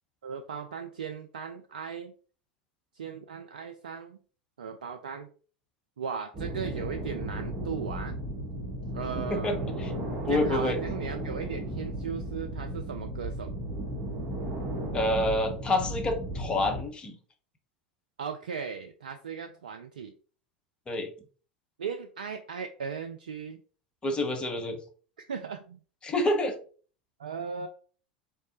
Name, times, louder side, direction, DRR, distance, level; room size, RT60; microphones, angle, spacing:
voice 1, 0.2-2.1 2.9-4.2 4.6-5.3 6.0-8.2 8.9-9.7 10.3-13.5 18.2-20.1 21.8-23.6 25.2-25.8 27.2-27.7, right 6 dB, 75° right, 6 dB, 0.3 m, -37 dB
sound 1, 6.3-16.8, right 1 dB, 30° right, 1.5 m, -35 dB
voice 2, 9.3-9.9 10.3-10.8 14.9-17.2 20.9-21.1 24.0-24.8 26.0-26.5, left 1 dB, 20° left, 4 dB, 0.9 m, -28 dB
3.9 x 3.2 x 2.8 m, 0.41 s
figure-of-eight pair, 85°, 5 cm